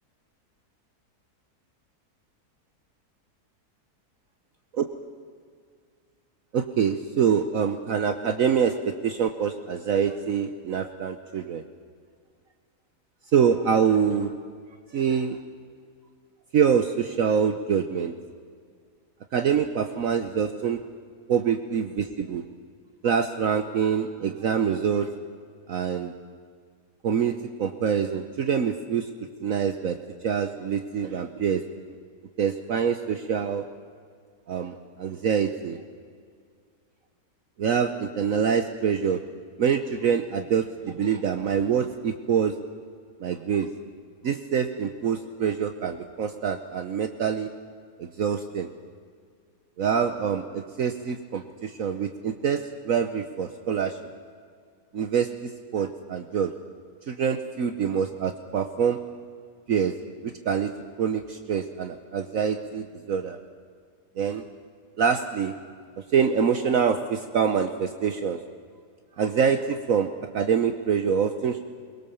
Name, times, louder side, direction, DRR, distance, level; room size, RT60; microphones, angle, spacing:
voice 1, 6.5-11.6 13.3-14.3 14.9-15.4 16.5-18.1 19.3-20.8 21.3-22.4 23.0-25.1 25.7-26.1 27.0-29.1 29.4-30.0 30.2-31.6 32.4-33.6 34.5-35.8 37.6-39.2 39.6-42.5 43.2-43.7 44.2-47.5 48.0-48.7 49.8-54.0 54.9-56.5 57.1-59.0 59.7-59.9 60.2-60.7 61.0-63.4 64.2-64.4 65.0-65.5 66.0-68.4 69.2-71.6, right 7 dB, 60° right, 8 dB, 1.3 m, -25 dB
23.0 x 21.5 x 7.0 m, 2.1 s
omnidirectional pair, 1.7 m